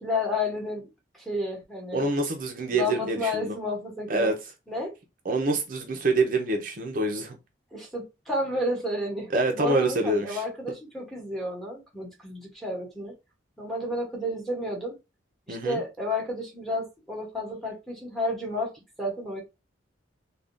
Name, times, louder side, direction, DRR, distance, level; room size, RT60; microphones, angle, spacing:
voice 1, 0.0-0.9 1.1-2.1 2.7-4.3 4.7-4.9 7.7-13.1 13.6-15.0 15.5-18.7 19.0-19.4, left 1 dB, ahead, 0.9 m, -31 dB
voice 2, 1.9-3.5 4.1-4.4 5.3-7.4 9.3-10.4 15.5-15.8, right 2 dB, 45° right, 0.5 m, -26 dB
3.4 x 2.2 x 2.5 m
head